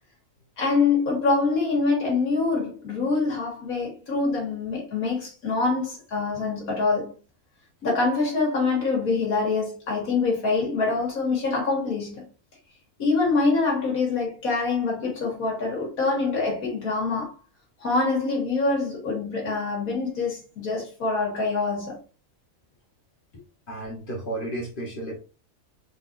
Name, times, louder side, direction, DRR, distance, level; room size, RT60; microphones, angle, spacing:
voice 1, 0.6-7.1 7.8-12.3 13.0-17.3 17.8-22.0, left 3 dB, 80° left, 1.9 m, -25 dB
voice 2, 23.7-25.2, right 1 dB, 40° left, 1.2 m, -32 dB
4.0 x 3.6 x 2.6 m
omnidirectional pair, 1.5 m